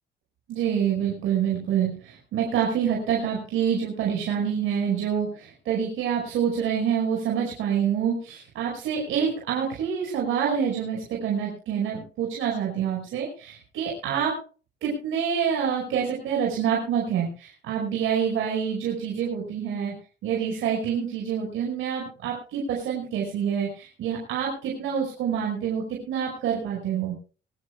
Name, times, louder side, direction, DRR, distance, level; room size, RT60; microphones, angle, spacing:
voice 1, 0.5-14.4 14.8-20.0 20.2-27.2, right 8 dB, 85° right, -2 dB, 5.4 m, -27 dB
23.5 x 13.5 x 2.3 m, 0.37 s
cardioid pair, 90°, 20 cm